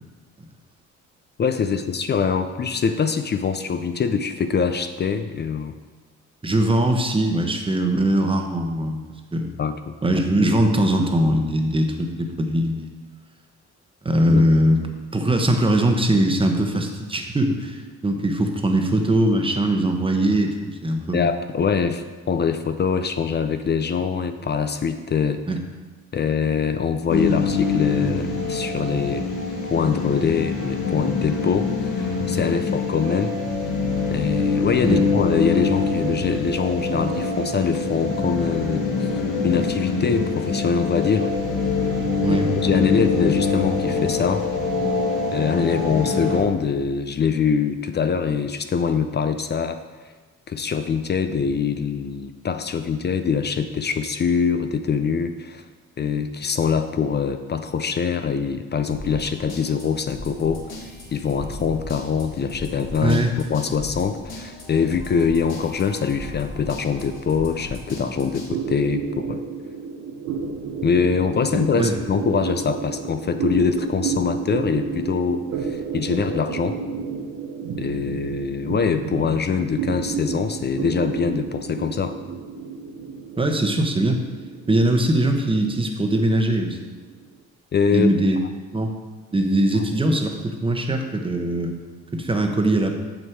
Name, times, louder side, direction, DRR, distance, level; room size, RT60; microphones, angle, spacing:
voice 1, 1.4-5.8 9.6-9.9 14.3-14.5 21.1-25.4 26.1-29.2 29.7-33.4 34.1-39.1 39.4-41.3 42.3-42.4 42.6-44.5 45.3-49.8 50.5-55.6 56.0-69.4 70.8-76.8 77.8-82.2 87.7-88.1, left 6 dB, 35° left, 9 dB, 0.5 m, -23 dB
voice 2, 6.4-9.0 9.3-9.5 10.0-12.9 14.0-14.8 15.1-21.3 25.5-25.6 34.8-35.0 42.2-42.5 63.0-63.3 71.7-72.0 83.4-84.2 84.7-86.9 87.9-88.4 88.7-88.9 89.3-91.7 92.1-92.9, right 1 dB, 15° right, 4 dB, 1.0 m, -21 dB
sound 1, 27.1-46.4, left 4 dB, 90° left, 1.6 m, -24 dB
sound 2, 58.9-68.5, left 1 dB, 60° left, 2.0 m, -37 dB
sound 3, 68.5-87.3, right 5 dB, 75° right, 0.9 m, -31 dB
6.4 x 6.3 x 4.6 m, 1.3 s
cardioid pair, 90°, 30 cm